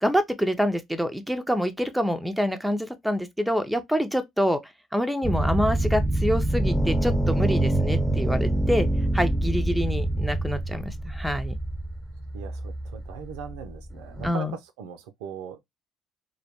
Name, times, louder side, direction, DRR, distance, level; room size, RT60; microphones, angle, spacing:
voice 1, 0.0-4.6 4.9-8.9 9.1-11.5 14.2-14.6, equal, ahead, 0.5 m, -26 dB
sound 1, 5.2-14.3, right 1 dB, 15° left, 0.9 m, -26 dB
voice 2, 12.3-14.5 14.8-15.6, right 7 dB, 80° right, 0.4 m, -39 dB
2.1 x 2.0 x 2.8 m
hypercardioid pair, 60°, 0 cm